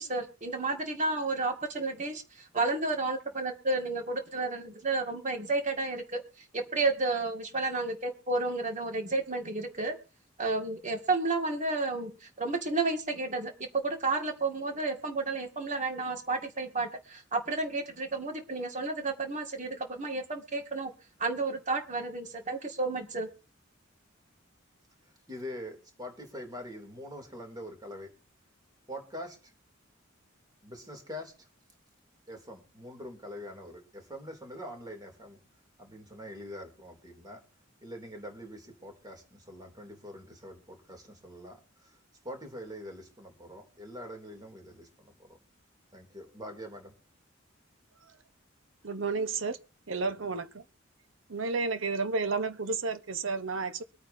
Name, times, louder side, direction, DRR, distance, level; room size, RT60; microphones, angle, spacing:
voice 1, 0.0-6.2 6.5-10.0 10.4-20.9 21.2-23.3, right 3 dB, 40° right, 2.1 m, -31 dB
voice 2, 25.0-28.1 28.9-29.5 30.6-31.5 32.3-35.4 35.8-37.4 37.8-42.0 42.2-45.4 45.9-47.0, equal, 20° right, 2.9 m, -44 dB
voice 3, 48.8-49.6 49.9-50.6 51.3-53.8, right 4 dB, 75° right, 1.1 m, -31 dB
24.0 x 9.1 x 2.8 m
head